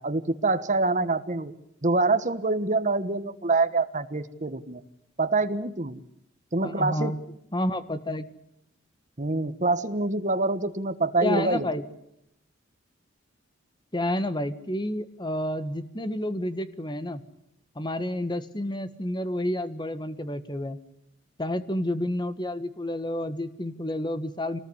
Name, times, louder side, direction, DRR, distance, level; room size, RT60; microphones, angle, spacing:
voice 1, 0.0-1.5 1.8-4.8 5.2-6.0 6.5-7.1 9.2-11.7, right 3 dB, 40° right, 10 dB, 1.4 m, -25 dB
voice 2, 6.6-7.2 7.5-8.3 11.2-11.8 13.9-17.2 17.7-20.8 21.4-24.6, left 1 dB, 25° left, 12 dB, 1.5 m, -30 dB
26.0 x 19.5 x 9.9 m, 0.78 s
head